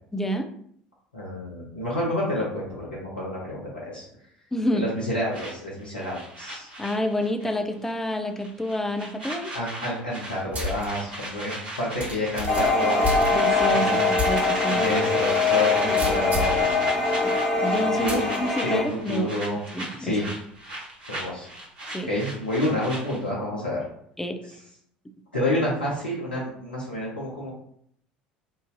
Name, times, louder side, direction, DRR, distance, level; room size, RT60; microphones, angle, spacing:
voice 1, 0.1-0.5 4.5-4.9 6.8-9.5 13.3-14.8 15.8-16.0 17.2-17.3 17.6-19.3 19.7-20.1 21.9-22.1 24.2-24.4, equal, 5° left, 6 dB, 0.4 m, -28 dB
voice 2, 1.1-4.1 4.7-6.7 9.5-13.1 13.7-14.1 14.7-16.8 18.0-19.6 20.0-20.2 21.1-21.5 22.0-23.9 24.5-24.6 25.3-27.5, left 1 dB, 80° left, -5 dB, 0.7 m, -29 dB
sound 1, 5.3-7.6 7.8-8.1 8.4-23.3, right 1 dB, 70° right, 1.1 m, -35 dB
sound 2, 10.5-10.9 11.3-11.4 12.0-13.7 14.2-14.4 14.8-14.9 15.9-16.6 18.1-18.4, left 2 dB, 35° right, 1.3 m, -30 dB
sound 3, 12.5-18.8, left 3 dB, 35° left, 1.3 m, -23 dB
3.8 x 2.5 x 2.6 m, 0.67 s
figure-of-eight pair, 65°, 5 cm